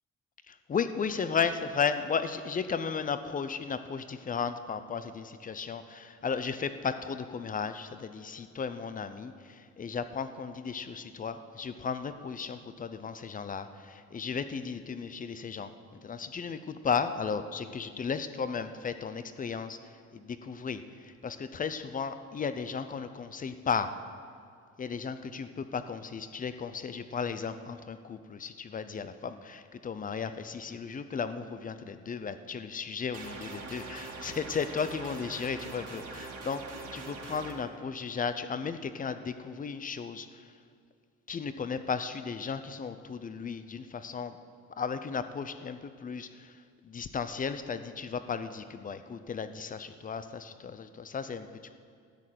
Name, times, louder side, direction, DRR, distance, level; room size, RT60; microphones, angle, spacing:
voice 1, 0.7-15.7 16.0-23.9 24.8-36.6 36.9-40.5 41.3-44.4 44.8-51.7, left 6 dB, 30° left, 11 dB, 0.6 m, -35 dB
sound 1, 33.1-37.5, right 3 dB, 55° right, 2.2 m, -42 dB
13.0 x 6.5 x 9.2 m, 2.2 s
cardioid pair, 140°, 29 cm